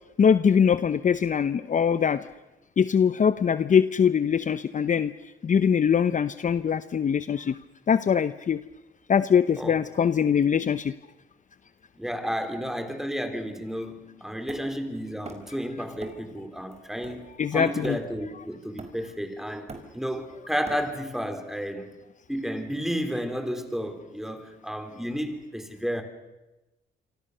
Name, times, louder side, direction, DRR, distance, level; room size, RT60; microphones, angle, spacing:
voice 1, 0.2-2.3 2.8-5.1 5.4-7.6 7.9-8.6 9.1-10.9 17.4-18.0, left 7 dB, 40° left, 0.8 m, -22 dB
voice 2, 12.0-21.9 22.3-26.0, equal, ahead, 3.8 m, -32 dB
Hammer, 14.5-15.6 16.0-16.3 16.7-18.3 18.8-19.2 19.5-21.2, right 3 dB, 35° right, 4.7 m, -44 dB
27.5 x 25.0 x 6.8 m
cardioid pair, 90°, 20 cm